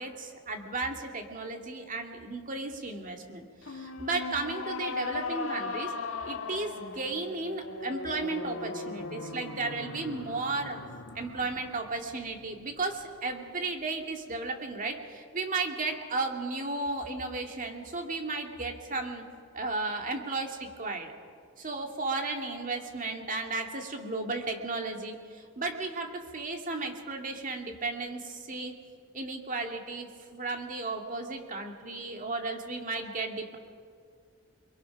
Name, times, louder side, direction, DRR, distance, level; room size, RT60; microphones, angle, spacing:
voice 1, 0.0-5.9 6.2-10.8 11.1-19.2 19.5-21.1 21.6-28.7 29.1-33.6, right 3 dB, 40° right, 3 dB, 2.3 m, -34 dB
sound 1, 3.6-13.0, left 4 dB, 65° left, 1.6 m, -39 dB
29.0 x 22.0 x 6.0 m, 2.1 s
head